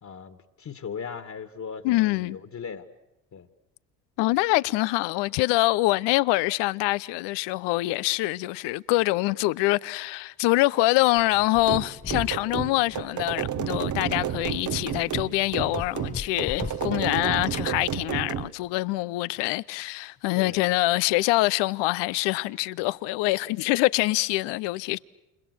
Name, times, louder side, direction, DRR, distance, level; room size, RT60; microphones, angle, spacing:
voice 1, 0.0-2.9 3.3-3.5 20.4-20.7 24.9-25.0, left 6 dB, 40° left, 2.2 m, -38 dB
voice 2, 1.8-2.4 4.2-25.0, left 19 dB, 65° left, 0.9 m, -25 dB
sound 1, 11.2-17.8, left 5 dB, 15° left, 0.9 m, -41 dB
sound 2, 11.6-18.5, right 10 dB, 40° right, 1.2 m, -31 dB
29.0 x 29.0 x 6.4 m
hypercardioid pair, 60°, 46 cm